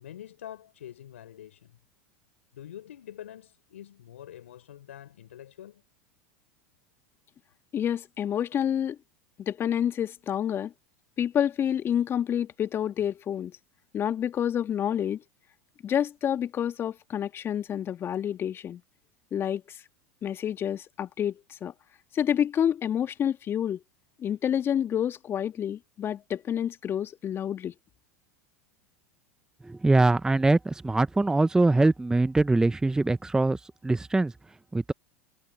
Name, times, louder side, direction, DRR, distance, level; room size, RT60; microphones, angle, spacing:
voice 1, 0.0-1.8 2.5-5.8, left 11 dB, 75° left, 4.7 m, -45 dB
voice 2, 7.7-9.0 9.4-10.7 11.2-13.6 13.9-15.2 15.8-18.8 19.3-19.8 20.2-21.7 22.1-23.8 24.2-27.7, left 9 dB, 35° left, 2.2 m, -28 dB
voice 3, 29.6-34.3 34.7-34.9, right 2 dB, 10° right, 0.8 m, -23 dB
hypercardioid pair, 85°, 7 cm